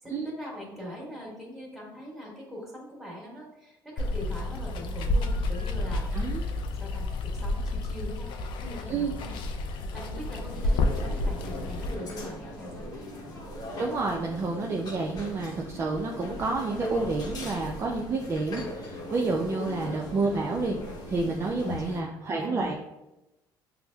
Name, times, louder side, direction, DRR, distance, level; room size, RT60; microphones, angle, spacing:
voice 1, 0.0-6.1 6.8-9.4 9.9-13.0 19.5-19.9 21.6-22.8, equal, ahead, -5 dB, 1.5 m, -42 dB
Water, 4.0-11.9, left 2 dB, 65° left, 0.4 m, -30 dB
sound 1, 10.5-22.0, left 1 dB, 50° left, 0.8 m, -39 dB
voice 2, 13.8-20.8 21.1-22.8, right 3 dB, 30° right, 0 dB, 0.4 m, -29 dB
5.6 x 2.0 x 2.2 m, 0.94 s
cardioid pair, 100°, 9 cm